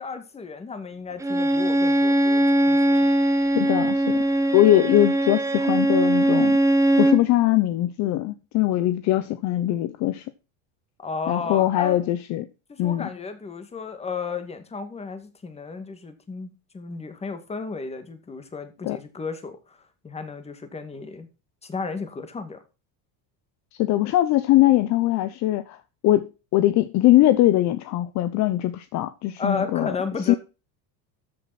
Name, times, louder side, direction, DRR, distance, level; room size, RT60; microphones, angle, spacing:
voice 1, 0.0-3.1 11.0-12.1 12.7-19.8 20.0-21.3 21.6-22.6 29.4-30.4, left 4 dB, 15° left, 2.1 m, -33 dB
Bowed string instrument, 1.2-7.3, right 1 dB, 10° right, 1.0 m, -20 dB
voice 2, 3.5-4.2 4.5-6.6 7.0-10.2 11.3-12.5 12.8-13.1 18.8-19.0 23.8-25.8 26.0-30.0 30.3-30.4, left 14 dB, 45° left, 0.8 m, -21 dB
13.5 x 7.1 x 4.2 m
cardioid pair, 150°, 40 cm